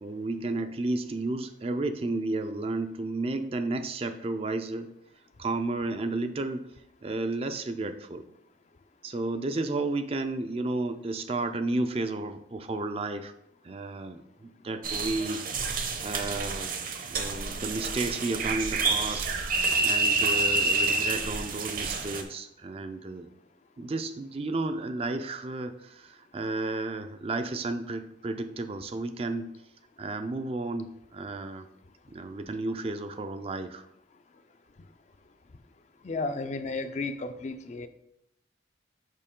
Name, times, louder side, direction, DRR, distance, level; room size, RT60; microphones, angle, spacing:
voice 1, 0.0-4.9 5.4-6.6 7.0-8.2 9.0-13.3 13.6-16.7 17.1-19.3 19.8-23.3 23.8-29.5 30.0-31.7 32.1-33.9, right 2 dB, 30° right, 9 dB, 0.4 m, -32 dB
sound 1, 14.8-22.2, right 3 dB, 45° right, 0.7 m, -28 dB
voice 2, 36.0-37.9, left 3 dB, 35° left, 9 dB, 0.4 m, -33 dB
6.6 x 5.4 x 3.7 m, 0.78 s
head